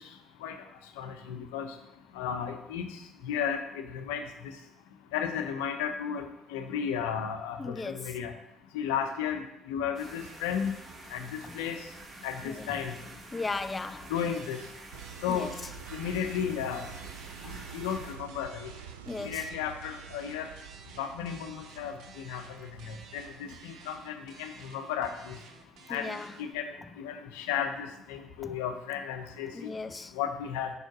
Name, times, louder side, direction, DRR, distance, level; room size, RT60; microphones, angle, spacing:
voice 1, 1.0-1.7 2.1-2.9 3.2-4.2 5.1-8.3 8.7-9.4 9.7-10.7 11.1-11.8 12.2-12.9 14.1-14.6 15.2-15.5 15.9-16.9 17.5-18.7 19.2-20.5 21.0-25.4 25.9-26.7 27.0-29.7 30.1-30.7, left 8 dB, 80° left, 0.7 m, -34 dB
voice 2, 7.6-8.1 11.4-11.6 12.4-12.7 13.3-14.1 15.3-15.5 19.1-19.5 25.9-26.3 28.4-28.5 29.5-30.1, left 3 dB, 25° left, 0.3 m, -37 dB
sound 1, 9.9-18.1, right 2 dB, 45° right, 1.4 m, -48 dB
sound 2, 14.2-26.6, right 5 dB, 65° right, 0.8 m, -53 dB
sound 3, 14.9-25.0, right 9 dB, 90° right, 0.3 m, -48 dB
5.5 x 4.5 x 6.0 m
hypercardioid pair, 55°, 0 cm